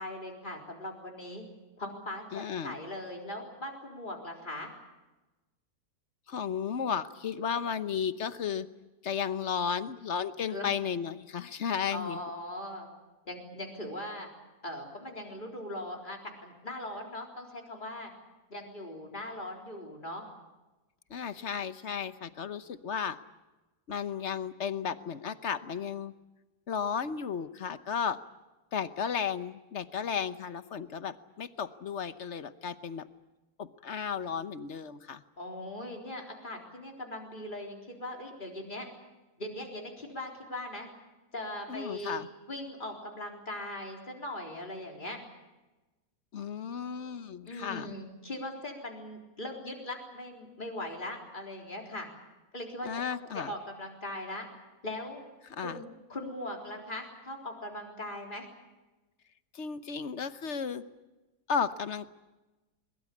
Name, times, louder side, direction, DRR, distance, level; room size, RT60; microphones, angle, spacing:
voice 1, 0.0-1.4 1.8-4.7 10.5-10.7 11.9-12.9 13.3-14.3 14.6-18.1 18.5-20.2 35.4-38.9 39.4-40.9 41.3-42.2 42.5-45.2 47.5-52.1 52.5-54.5 54.8-55.2 55.6-58.5, left 1 dB, 30° left, 1 dB, 4.1 m, -40 dB
voice 2, 2.3-2.7 6.3-8.7 9.0-12.2 21.1-23.2 23.9-26.1 26.7-28.2 28.7-33.1 33.6-35.2 41.7-42.3 46.3-47.9 52.8-53.5 55.5-55.8 59.5-60.8 61.5-62.1, left 7 dB, 55° left, 13 dB, 1.2 m, -34 dB
22.5 x 22.0 x 8.5 m, 1.1 s
omnidirectional pair, 1.6 m